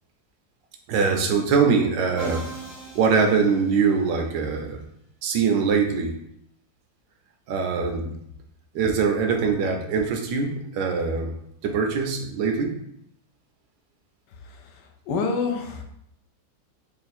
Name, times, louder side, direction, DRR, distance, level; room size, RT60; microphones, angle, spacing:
voice 1, 0.9-2.5 2.9-4.8 5.2-6.2 7.5-8.2 8.7-11.3 11.6-12.8, right 5 dB, 80° right, 3 dB, 1.3 m, -23 dB
Musical instrument, 2.2-4.3, right 3 dB, 35° left, 0.4 m, -39 dB
voice 2, 14.4-15.8, left 4 dB, 75° left, 4 dB, 1.2 m, -28 dB
3.4 x 2.5 x 4.1 m, 0.74 s
omnidirectional pair, 1.9 m